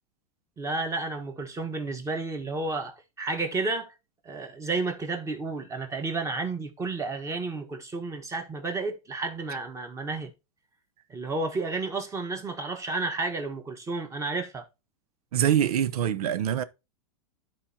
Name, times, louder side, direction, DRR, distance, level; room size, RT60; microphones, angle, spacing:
voice 1, 0.6-4.0 4.2-10.3 11.1-14.7, right 3 dB, 15° right, 1.3 m, -31 dB
voice 2, 15.3-16.6, right 10 dB, 85° right, 0.7 m, -24 dB
12.5 x 4.2 x 2.8 m
supercardioid pair, 135°, 19 cm